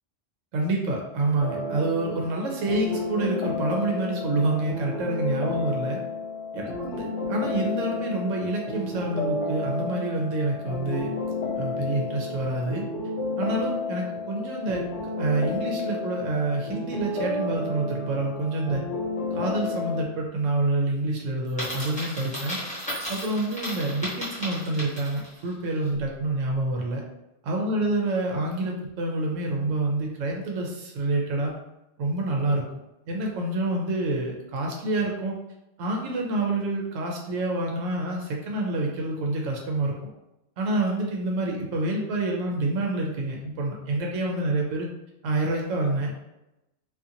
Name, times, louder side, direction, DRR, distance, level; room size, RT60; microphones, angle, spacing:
voice 1, 0.5-6.0 6.5-11.1 11.5-12.8 13.4-14.8 15.2-18.8 19.3-22.6 23.1-27.0 27.5-31.5 32.0-32.7 33.1-35.3 35.8-40.0 40.6-44.9 45.2-46.1, right 2 dB, 90° right, 0 dB, 1.0 m, -27 dB
sound 1, 1.4-20.0, left 2 dB, 75° left, 0.9 m, -31 dB
Coin (dropping), 21.5-25.4, equal, 5° left, 0.8 m, -34 dB
2.5 x 2.5 x 2.7 m, 0.90 s
omnidirectional pair, 1.3 m